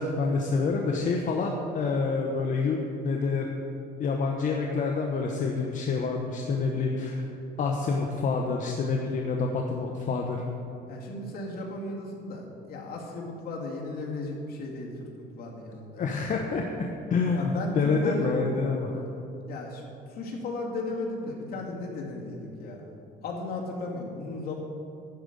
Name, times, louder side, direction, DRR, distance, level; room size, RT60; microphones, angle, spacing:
voice 1, 0.0-3.5 4.0-7.2 7.6-10.4 16.0-19.0, left 4 dB, 50° left, 1 dB, 1.0 m, -27 dB
voice 2, 10.9-16.2 17.3-18.3 19.5-19.8 20.1-22.9 23.2-24.5, left 2 dB, 65° left, -1 dB, 2.2 m, -35 dB
12.0 x 5.2 x 8.0 m, 2.6 s
cardioid pair, 110°, 17 cm